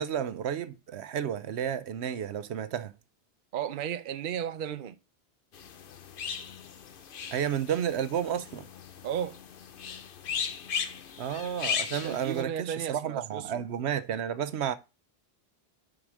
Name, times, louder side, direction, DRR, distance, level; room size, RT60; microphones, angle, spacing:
voice 1, 0.0-2.9 7.3-8.6 11.2-14.8, right 9 dB, 80° right, 1.0 m, -31 dB
voice 2, 3.5-5.0 9.0-9.4 12.0-13.7, right 9 dB, 55° right, 0.8 m, -34 dB
sound 1, 5.5-12.4, left 7 dB, 60° left, 0.9 m, -37 dB
6.0 x 5.1 x 6.3 m
omnidirectional pair, 1.1 m